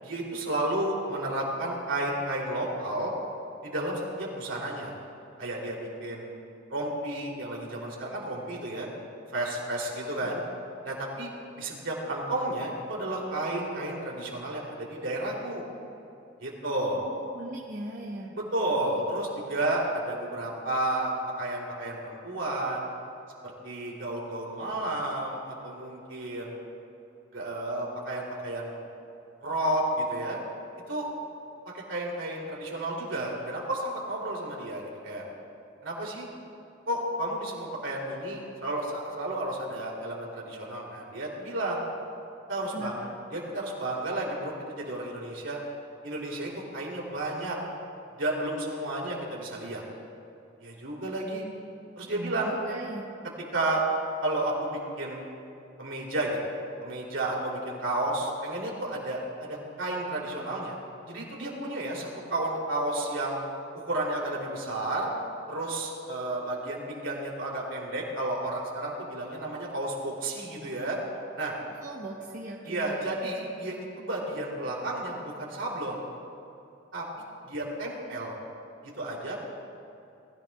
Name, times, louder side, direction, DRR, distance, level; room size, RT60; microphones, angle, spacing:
voice 1, 0.0-3.1 3.6-4.9 5.4-6.4 6.7-8.9 9.3-10.4 10.8-11.3 11.6-15.6 16.4-17.0 18.3-21.1 21.4-22.9 23.4-26.5 27.3-28.8 29.4-30.4 30.9-31.1 31.7-35.2 35.8-36.3 36.9-41.8 42.5-43.0 43.3-45.6 46.0-47.6 48.2-49.8 50.6-51.4 52.0-52.5 53.5-53.8 54.2-55.3 55.8-56.4 56.8-60.8 61.1-63.4 63.7-65.1 65.5-71.0 71.4-71.5 72.7-76.0 76.9-77.0 77.4-78.3 78.8-79.4, right 1 dB, 70° right, -3 dB, 3.1 m, -32 dB
voice 2, 17.0-18.3 42.7-43.1 52.0-53.1 71.8-73.1, right 1 dB, 45° right, -4 dB, 1.1 m, -39 dB
20.5 x 14.0 x 2.4 m, 2.8 s
head